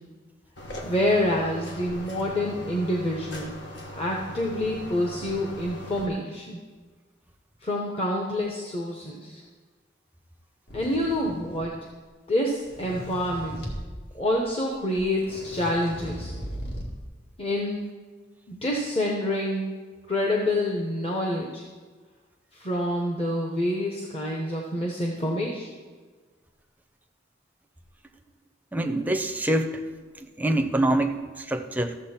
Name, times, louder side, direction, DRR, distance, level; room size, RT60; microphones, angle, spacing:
sound 1, 0.6-6.1, left 1 dB, 75° left, 1.4 m, -39 dB
voice 1, 0.8-3.6 3.9-6.6 7.6-9.4 10.7-11.9 12.3-13.6 14.1-16.3 17.4-17.8 18.5-19.7 20.1-21.6 22.5-25.8, left 1 dB, 30° left, -1 dB, 1.0 m, -27 dB
sound 2, 10.7-11.9 12.5-13.9 14.7-14.8 15.0-17.0, equal, 60° left, 1.9 m, -38 dB
voice 2, 28.7-29.8 30.2-32.0, right 1 dB, 10° right, 6 dB, 0.6 m, -25 dB
14.0 x 7.3 x 4.4 m, 1.4 s
head